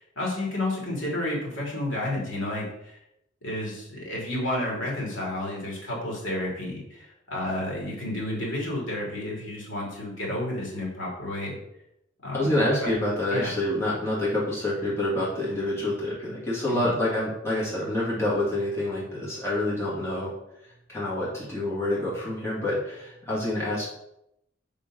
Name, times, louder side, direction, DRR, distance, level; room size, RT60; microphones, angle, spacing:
voice 1, 0.0-3.0 3.4-11.6 12.2-12.5 12.8-12.9 13.3-13.5 16.7-16.9, left 1 dB, 80° left, -3 dB, 2.9 m, -31 dB
voice 2, 12.3-20.3 20.9-23.9, left 1 dB, 15° left, -7 dB, 2.4 m, -27 dB
5.3 x 5.1 x 6.3 m, 0.80 s
head